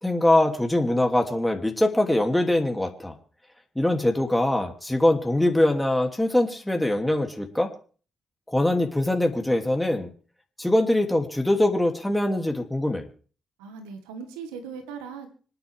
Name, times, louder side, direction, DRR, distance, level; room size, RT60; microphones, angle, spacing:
voice 1, 0.0-3.2 3.7-7.7 8.5-10.1 10.6-13.1, left 1 dB, 10° left, 3 dB, 2.8 m, -23 dB
voice 2, 13.6-15.3, right 6 dB, 90° right, 6 dB, 1.7 m, -39 dB
26.0 x 9.6 x 3.6 m, 0.41 s
hypercardioid pair, 45°, 0 cm